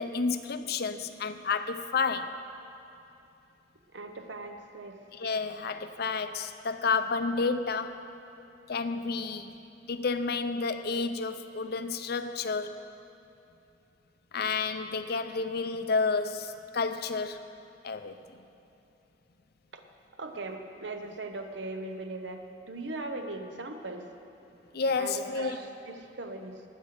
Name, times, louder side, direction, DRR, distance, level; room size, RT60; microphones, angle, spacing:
voice 1, 0.0-2.4 5.1-8.0 8.7-9.5 9.8-12.9 14.3-17.5 17.8-18.4 24.7-25.6, left 4 dB, 60° left, 10 dB, 0.6 m, -30 dB
voice 2, 3.9-5.0 19.7-19.8 20.2-24.1 25.0-26.6, right 2 dB, 80° right, 5 dB, 1.1 m, -39 dB
19.5 x 7.6 x 6.0 m, 2.8 s
head